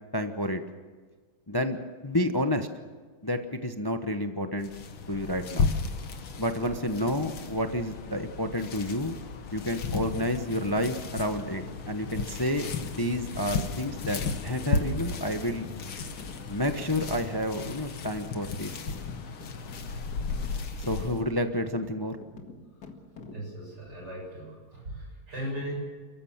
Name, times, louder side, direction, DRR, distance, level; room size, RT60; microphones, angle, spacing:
voice 1, 0.1-0.6 1.5-2.7 3.2-4.7 5.1-5.7 6.4-9.1 9.5-15.7 16.5-19.0 20.9-22.2, left 1 dB, 20° left, 7 dB, 0.6 m, -30 dB
sound 1, 4.6-21.2, left 4 dB, 75° left, 2.4 m, -34 dB
sound 2, 13.9-23.6, left 3 dB, 50° left, 2.4 m, -48 dB
voice 2, 23.3-25.7, equal, 50° right, 0 dB, 7.2 m, -38 dB
29.5 x 14.5 x 7.4 m, 1.5 s
omnidirectional pair, 2.3 m